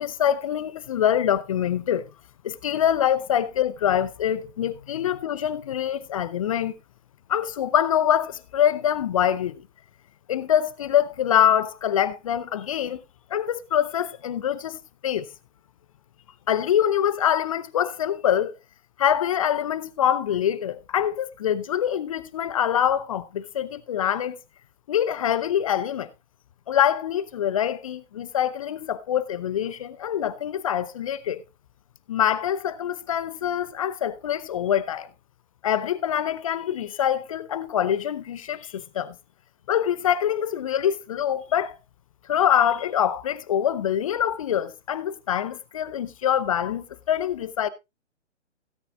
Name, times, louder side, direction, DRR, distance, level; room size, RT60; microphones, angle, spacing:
voice 1, 0.0-2.0 2.4-6.8 7.3-9.6 10.3-13.0 13.3-15.3 16.5-18.6 19.0-24.4 24.9-26.1 26.7-31.4 32.1-35.1 35.6-39.2 39.7-41.8 42.3-47.7, left 10 dB, 30° left, 0.6 m, -24 dB
17.0 x 9.1 x 2.3 m
figure-of-eight pair, 125°, 36 cm